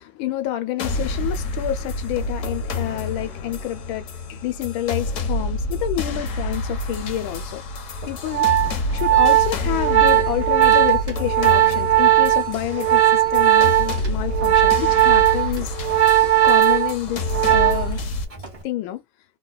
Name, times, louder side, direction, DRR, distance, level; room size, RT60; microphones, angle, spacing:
voice 1, 0.0-7.6 8.1-8.5 8.9-15.7 16.4-18.0 18.6-19.0, left 13 dB, 90° left, 1.4 m, -28 dB
sound 1, 0.8-18.2, left 2 dB, 60° left, 0.8 m, -28 dB
Organ, 8.0-18.0 18.3-18.6, right 13 dB, 40° right, 0.5 m, -18 dB
3.4 x 2.3 x 2.2 m
omnidirectional pair, 2.2 m